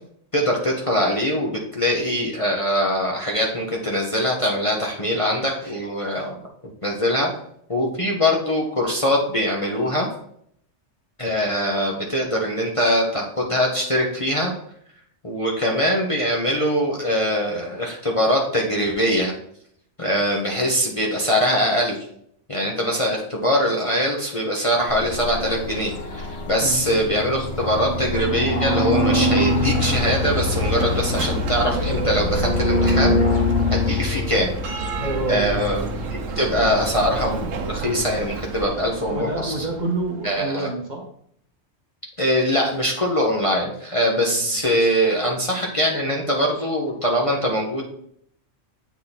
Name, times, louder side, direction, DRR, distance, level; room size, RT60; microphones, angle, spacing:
voice 1, 0.3-6.4 6.8-7.3 7.7-10.1 11.2-14.5 15.2-19.3 20.0-22.0 22.5-33.2 33.7-34.5 35.3-39.5 40.2-40.7 42.2-47.9, equal, 30° left, -2 dB, 0.9 m, -22 dB
sound 1, 24.9-38.7, left 2 dB, 50° left, 1.2 m, -25 dB
Bell, 28.5-40.3, right 6 dB, 90° right, 1.1 m, -31 dB
voice 2, 34.9-35.6 39.1-41.0 44.1-44.6, right 2 dB, 40° right, 1 dB, 1.0 m, -28 dB
8.2 x 3.7 x 4.1 m, 0.68 s
omnidirectional pair, 1.3 m